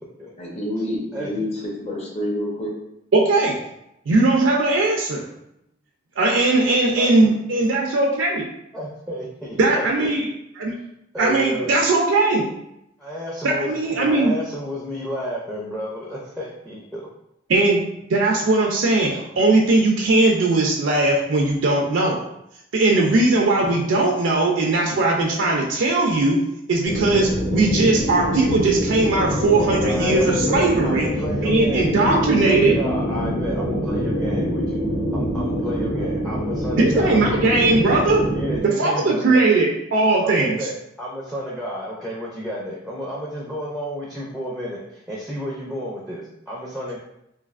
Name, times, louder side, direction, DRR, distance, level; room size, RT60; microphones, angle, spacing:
voice 1, 0.4-1.5 1.8-2.7, left 1 dB, 35° left, -2 dB, 0.7 m, -27 dB
voice 2, 1.1-1.5 7.0-7.3 8.7-10.1 11.1-11.8 13.0-17.0 29.6-34.8 35.1-37.3 38.3-39.6 40.2-47.0, equal, ahead, -4 dB, 0.4 m, -31 dB
voice 3, 3.1-3.6 4.1-5.2 6.2-8.4 9.6-10.3 10.6-10.7 11.2-12.4 13.4-14.3 17.5-17.8 18.1-22.2 22.7-26.4 26.7-31.1 31.4-32.7 36.8-38.2 38.6-40.6, right 2 dB, 75° right, 0 dB, 0.4 m, -19 dB
sound 1, 26.8-38.6, equal, 80° left, 0.9 m, -24 dB
3.1 x 2.6 x 2.4 m, 0.81 s
head